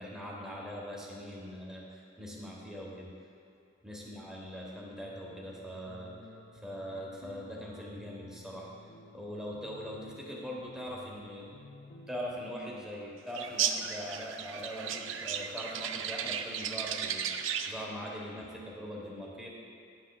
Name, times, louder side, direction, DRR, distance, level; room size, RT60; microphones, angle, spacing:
voice 1, 0.0-3.1 3.8-6.1 6.6-8.7 9.1-11.5 12.1-19.5, equal, 5° right, -4 dB, 1.3 m, -41 dB
sound 1, 5.0-12.6, left 2 dB, 65° left, 0.7 m, -53 dB
sound 2, 13.3-17.8, right 8 dB, 80° right, 0.4 m, -35 dB
11.0 x 8.0 x 2.4 m, 2.7 s
head